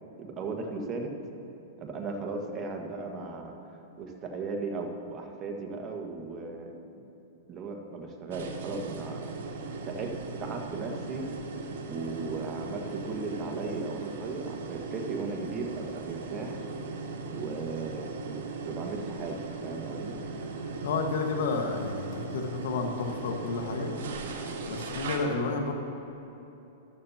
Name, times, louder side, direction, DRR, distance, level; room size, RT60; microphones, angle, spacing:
voice 1, 0.2-1.1 1.8-3.5 4.0-6.7 7.5-9.2 9.8-11.3 11.8-16.6 17.3-20.2, right 4 dB, 30° right, 2 dB, 1.6 m, -36 dB
sound 1, 8.3-25.2, right 3 dB, 75° right, 1.7 m, -38 dB
voice 2, 20.8-23.9 24.7-25.7, left 4 dB, 75° left, 4 dB, 1.5 m, -31 dB
14.5 x 13.0 x 2.9 m, 2.9 s
hypercardioid pair, 130°, 0 cm